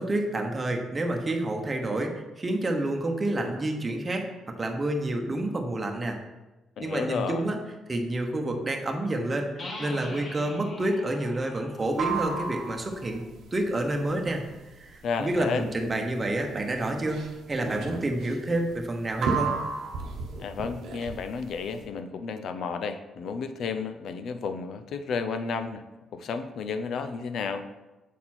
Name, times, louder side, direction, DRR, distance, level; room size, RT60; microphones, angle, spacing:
voice 1, 0.0-4.2 4.6-6.2 6.8-7.6 7.9-13.2 13.5-14.4 14.8-19.6, right 1 dB, 25° right, 2 dB, 1.0 m, -29 dB
voice 2, 6.8-7.5 15.0-15.7 20.4-25.8 26.1-27.7, left 5 dB, 70° left, 10 dB, 0.5 m, -32 dB
sound 1, 9.6-13.2, left 2 dB, 50° left, 1.2 m, -43 dB
sound 2, 11.8-21.8, right 5 dB, 75° right, 0.9 m, -33 dB
7.2 x 4.2 x 4.3 m, 1.1 s
cardioid pair, 90°, 0 cm